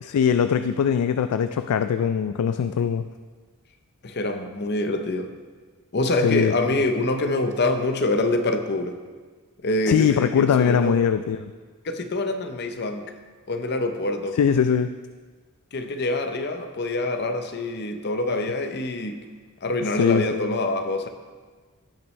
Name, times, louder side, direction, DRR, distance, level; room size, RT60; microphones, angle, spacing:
voice 1, 0.0-3.0 6.2-6.5 9.9-11.4 14.4-14.9 19.9-20.5, left 7 dB, 90° left, 10 dB, 0.3 m, -21 dB
voice 2, 4.0-5.3 5.9-9.0 9.6-11.0 11.8-13.0 13.5-14.4 15.7-19.2 19.6-21.1, left 2 dB, 50° left, 7 dB, 0.7 m, -25 dB
17.0 x 6.0 x 3.2 m, 1.5 s
head